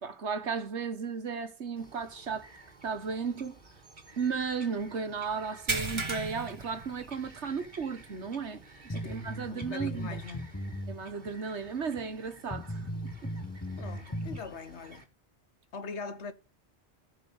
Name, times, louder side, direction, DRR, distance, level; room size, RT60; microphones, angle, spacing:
voice 1, 0.0-2.5 2.8-3.6 4.2-8.6 8.9-10.2 10.9-12.8 13.2-13.3, right 5 dB, 90° right, 1.8 m, -34 dB
Bird vocalization bird call bird song, 1.8-15.0, right 2 dB, 45° right, 2.1 m, -54 dB
sound 1, 5.7-7.6 7.9-8.1 8.6-8.7 10.4-10.5, right 3 dB, 25° right, 1.4 m, -35 dB
voice 2, 8.9-10.4 13.8-15.1 15.7-16.3, left 4 dB, 85° left, 1.4 m, -42 dB
sound 2, 8.9-11.0 11.3-11.4 12.0-12.1 12.5-14.4, equal, 15° left, 1.0 m, -37 dB
15.0 x 5.3 x 7.2 m
omnidirectional pair, 1.1 m